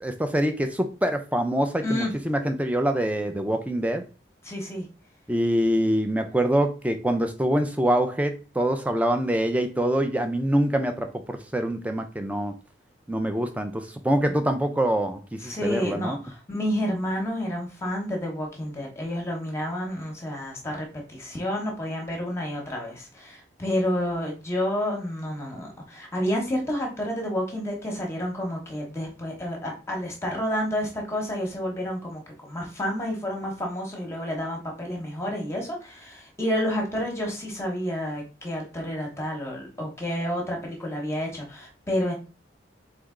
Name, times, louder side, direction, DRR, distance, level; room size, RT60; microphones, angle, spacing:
voice 1, 0.0-4.0 5.3-12.5 13.1-16.2, right 1 dB, 5° right, 0.4 m, -25 dB
voice 2, 4.4-4.9 15.4-42.1, equal, 15° left, 1.0 m, -30 dB
3.9 x 3.3 x 3.7 m
head